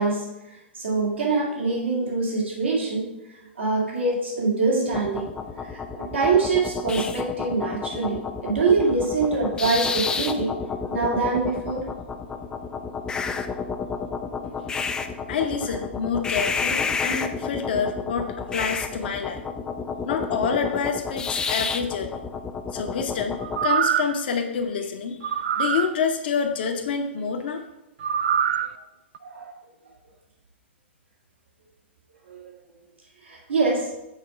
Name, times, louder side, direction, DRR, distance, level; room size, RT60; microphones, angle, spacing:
voice 1, 0.0-3.1 3.4-5.3 5.6-10.6 10.9-11.9 29.2-29.5 32.3-32.5 33.2-33.9, right 3 dB, 70° right, -3 dB, 2.2 m, -24 dB
sound 1, 4.9-23.7, left 5 dB, 10° left, 0.4 m, -30 dB
voice 2, 15.3-19.4 20.1-22.2 22.7-27.6, left 6 dB, 55° left, 4 dB, 0.9 m, -27 dB
sound 2, 23.4-24.2 25.2-25.9 28.0-28.7 29.1-29.2, right 8 dB, 55° right, 0.4 m, -24 dB
6.6 x 4.6 x 4.9 m, 0.93 s
figure-of-eight pair, 110°, 6 cm